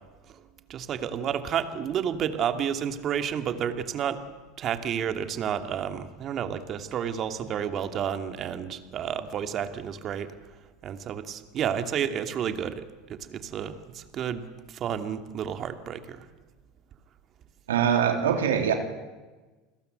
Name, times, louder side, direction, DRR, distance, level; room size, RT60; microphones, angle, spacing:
voice 1, 0.7-4.2 4.6-10.3 10.8-12.8 13.1-16.2, right 8 dB, 45° right, 8 dB, 2.6 m, -31 dB
voice 2, 17.7-18.8, right 8 dB, 85° right, 5 dB, 3.2 m, -23 dB
29.5 x 21.0 x 8.1 m, 1.2 s
hypercardioid pair, 90°, 0 cm